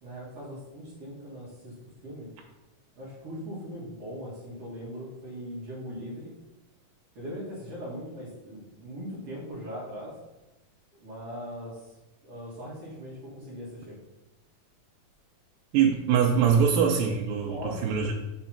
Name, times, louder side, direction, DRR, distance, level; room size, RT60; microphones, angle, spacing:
voice 1, 0.0-1.7 2.0-2.3 3.0-6.3 7.2-10.2 11.0-12.0 12.2-14.0 17.4-18.0, equal, 50° right, -7 dB, 2.2 m, -40 dB
voice 2, 15.7-18.1, right 7 dB, 85° right, 0 dB, 2.4 m, -23 dB
5.9 x 3.9 x 5.8 m, 1.0 s
omnidirectional pair, 3.9 m